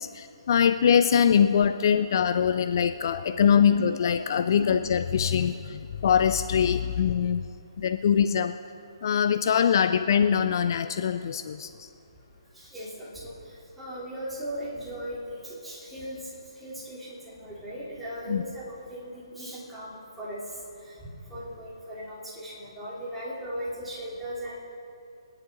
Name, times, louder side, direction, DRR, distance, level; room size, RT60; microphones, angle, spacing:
voice 1, 0.0-7.4 7.8-8.6 9.0-11.9 18.3-18.4, left 7 dB, 50° left, 10 dB, 0.5 m, -23 dB
voice 2, 12.6-13.3 13.8-16.3 16.6-20.4 21.3-24.6, equal, 5° right, -9 dB, 3.6 m, -38 dB
26.5 x 9.9 x 3.9 m, 2.6 s
figure-of-eight pair, 140°, 3 cm